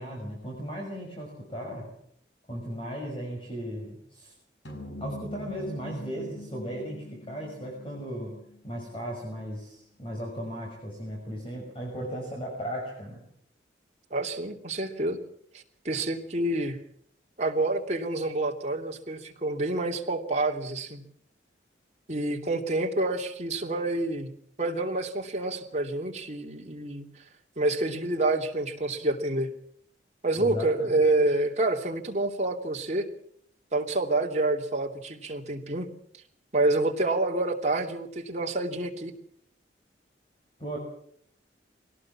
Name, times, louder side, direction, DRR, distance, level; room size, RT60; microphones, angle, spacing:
voice 1, 0.0-1.9 2.5-4.3 5.0-8.4 8.6-13.2 30.4-30.9 40.6-40.8, equal, 30° left, 0 dB, 6.0 m, -36 dB
sound 1, 4.6-9.3, equal, 75° left, 5.9 m, -43 dB
voice 2, 14.1-15.2 15.5-16.8 17.4-21.0 22.1-24.3 24.6-27.1 27.6-29.5 30.2-33.0 33.7-35.9 36.5-39.1, right 2 dB, 40° right, 2 dB, 2.9 m, -28 dB
23.5 x 18.0 x 7.4 m, 0.66 s
head